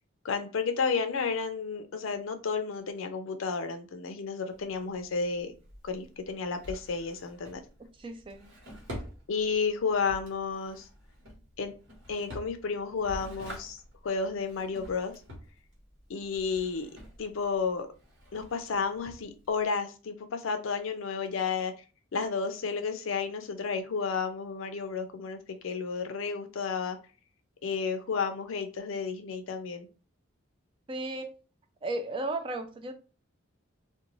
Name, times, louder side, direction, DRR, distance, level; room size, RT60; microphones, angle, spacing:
voice 1, 0.2-5.5 5.8-7.6 9.3-10.9 11.6-11.7 12.1-15.1 16.1-16.9 17.2-17.9 18.3-21.7 22.1-27.0 27.6-29.9, left 5 dB, 80° left, 0.5 m, -32 dB
Drawer open or close, 4.5-19.7, equal, 70° right, 1.1 m, -47 dB
voice 2, 8.0-8.5 30.9-31.3 31.8-32.9, right 2 dB, 25° right, 0.3 m, -34 dB
2.4 x 2.2 x 3.0 m
head